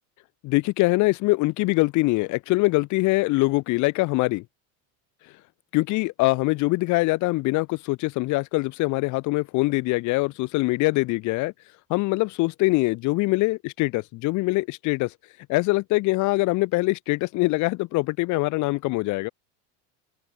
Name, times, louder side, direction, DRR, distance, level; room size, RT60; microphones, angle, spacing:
voice 1, 0.4-4.4 5.7-11.5 11.9-15.1 15.5-19.3, left 22 dB, 50° left, 2.2 m, -23 dB
open air
supercardioid pair, 150°, 38 cm